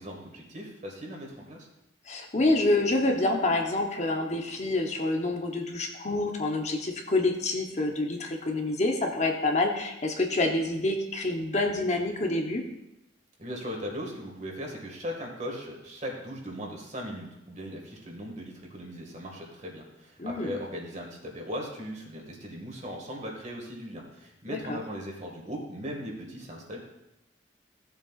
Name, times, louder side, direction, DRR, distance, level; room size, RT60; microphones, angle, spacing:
voice 1, 0.0-1.7 13.4-26.8, equal, 40° right, 0 dB, 2.0 m, -38 dB
voice 2, 2.1-12.6 20.2-20.6 24.5-24.8, left 2 dB, 40° left, 2 dB, 0.9 m, -27 dB
15.5 x 7.4 x 2.5 m, 0.87 s
head